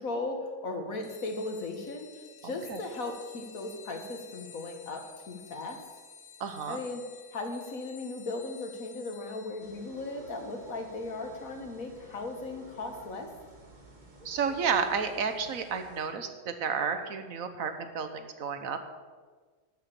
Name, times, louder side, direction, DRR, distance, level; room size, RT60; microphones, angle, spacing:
voice 1, 0.0-2.1 2.4-5.8 6.7-7.0 7.3-13.3, left 2 dB, 45° left, 4 dB, 1.8 m, -37 dB
sound 1, 1.0-13.1, left 7 dB, 75° left, 2.1 m, -53 dB
voice 2, 2.4-2.8 6.4-6.8 14.2-18.8, right 6 dB, 50° right, 8 dB, 1.2 m, -31 dB
sound 2, 9.6-16.1, right 2 dB, 25° right, 1.4 m, -53 dB
12.5 x 6.9 x 7.0 m, 1.4 s
omnidirectional pair, 2.2 m